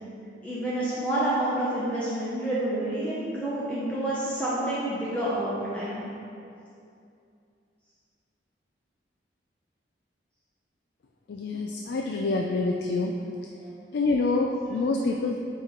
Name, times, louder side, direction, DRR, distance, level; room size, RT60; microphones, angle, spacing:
voice 1, 0.4-6.1 13.6-13.7, right 1 dB, 5° left, -9 dB, 0.8 m, -28 dB
voice 2, 11.3-13.1 13.9-15.4, left 3 dB, 65° left, 1 dB, 0.4 m, -26 dB
8.4 x 3.1 x 3.8 m, 2.5 s
head